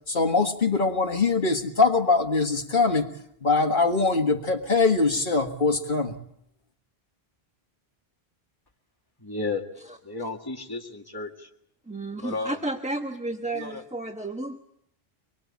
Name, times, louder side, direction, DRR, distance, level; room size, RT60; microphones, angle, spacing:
voice 1, 0.1-3.1 3.4-6.2, left 3 dB, 55° left, 6 dB, 1.7 m, -22 dB
voice 2, 9.2-9.6 10.0-11.5 12.2-12.6 13.5-13.8, left 3 dB, 20° left, 2 dB, 2.0 m, -33 dB
voice 3, 11.9-14.6, right 2 dB, 5° right, 5 dB, 1.2 m, -32 dB
24.5 x 23.0 x 8.5 m, 0.75 s
omnidirectional pair, 1.1 m